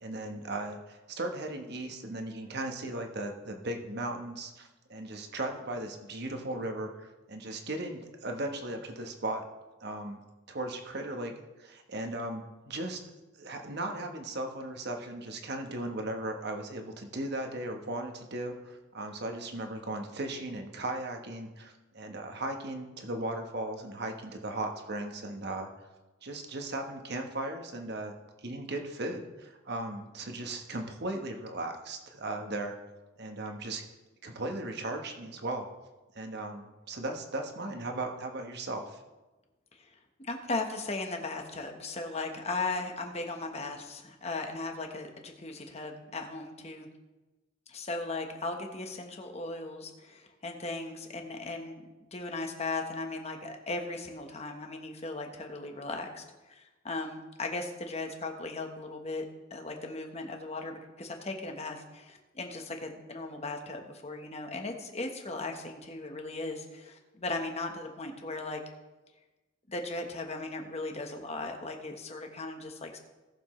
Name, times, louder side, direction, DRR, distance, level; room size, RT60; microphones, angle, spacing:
voice 1, 0.0-9.4 9.8-10.2 10.5-11.3 11.6-13.0 13.4-25.7 26.2-28.2 28.4-32.7 33.2-33.8 34.2-35.6 36.1-39.0, right 2 dB, 55° right, 4 dB, 1.3 m, -37 dB
voice 2, 39.7-46.9 47.7-51.8 52.1-59.2 59.5-68.6 69.7-73.0, left 2 dB, 35° left, 4 dB, 1.2 m, -37 dB
18.0 x 7.1 x 3.2 m, 1.1 s
head